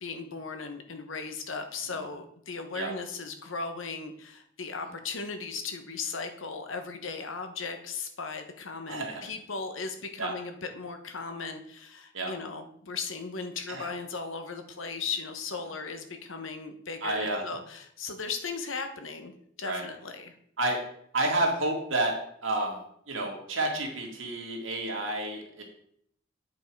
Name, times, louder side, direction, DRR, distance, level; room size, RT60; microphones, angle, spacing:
voice 1, 0.0-19.3 19.6-20.3, left 4 dB, 80° left, 7 dB, 1.1 m, -37 dB
voice 2, 8.9-9.3 10.2-10.3 12.1-12.3 13.7-13.9 17.0-17.5 19.6-19.8 20.6-20.8 21.1-22.2 22.4-22.8 23.1-25.6, right 2 dB, 80° right, 0 dB, 2.2 m, -30 dB
9.2 x 5.4 x 4.6 m, 0.68 s
head